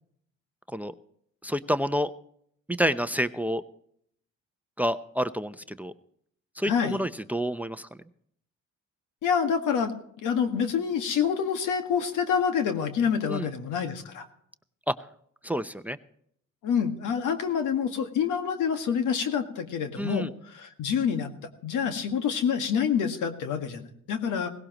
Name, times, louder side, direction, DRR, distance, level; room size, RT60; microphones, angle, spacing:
voice 1, 1.4-2.1 2.7-3.6 4.8-5.9 6.6-7.9 13.2-13.5 14.9-15.0 15.4-16.0 20.0-20.3, equal, 5° right, 13 dB, 0.7 m, -28 dB
voice 2, 6.6-7.0 9.2-9.9 10.2-14.2 16.6-21.3 21.6-24.5, left 7 dB, 85° left, 6 dB, 1.8 m, -27 dB
17.5 x 17.0 x 3.0 m, 0.67 s
cardioid pair, 90°, 30 cm